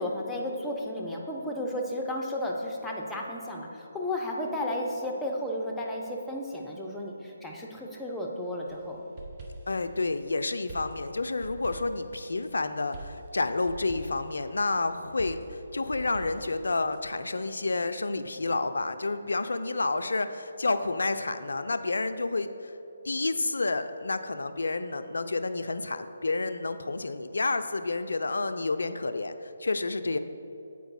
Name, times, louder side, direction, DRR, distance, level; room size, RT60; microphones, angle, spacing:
voice 1, 0.0-9.0, left 1 dB, 5° left, -1 dB, 0.7 m, -33 dB
sound 1, 8.7-9.9 10.7-12.5 12.9-14.4 15.2-17.0, right 2 dB, 35° right, 0.9 m, -44 dB
voice 2, 9.7-22.7 23.0-30.2, left 3 dB, 75° left, 9 dB, 0.4 m, -30 dB
7.9 x 4.6 x 4.1 m, 2.9 s
figure-of-eight pair, 145°, 0 cm